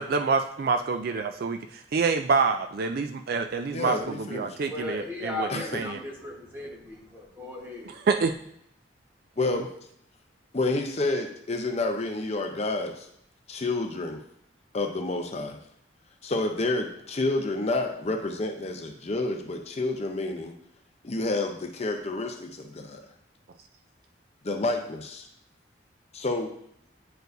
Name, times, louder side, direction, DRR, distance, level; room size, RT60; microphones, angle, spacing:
voice 1, 0.0-6.0 7.9-8.3 9.5-9.6, right 4 dB, 50° right, 7 dB, 0.3 m, -27 dB
voice 2, 3.7-4.6 5.5-5.8 9.4-9.7 10.5-13.1 13.5-14.2 14.7-15.6 16.2-20.5 21.0-23.0 24.4-25.2 26.1-26.5, left 2 dB, 35° left, 4 dB, 0.6 m, -29 dB
voice 3, 4.6-8.0, left 2 dB, 10° right, -1 dB, 1.2 m, -37 dB
9.3 x 4.5 x 2.6 m, 0.74 s
head